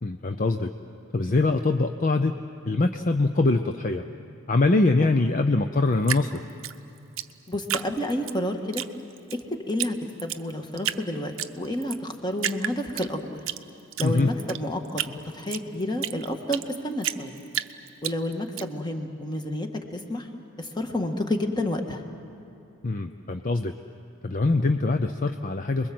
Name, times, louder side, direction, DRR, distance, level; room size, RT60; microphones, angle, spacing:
voice 1, 0.0-0.7 1.1-2.4 2.7-4.0 4.5-6.4 14.0-14.3 22.8-23.7 24.2-25.9, left 2 dB, 40° left, 7 dB, 0.6 m, -23 dB
Drip, 6.0-8.4 8.7-9.4 9.8-9.9 10.2-11.0 11.4-12.0 12.4-13.6 13.9-16.7 17.0-18.6, right 11 dB, 70° right, 0.7 m, -31 dB
voice 2, 7.5-8.8 9.5-9.9 10.2-13.2 14.0-17.3 18.0-20.3 20.6-22.0, left 1 dB, 20° left, 4 dB, 1.6 m, -30 dB
28.5 x 21.5 x 7.7 m, 2.8 s
head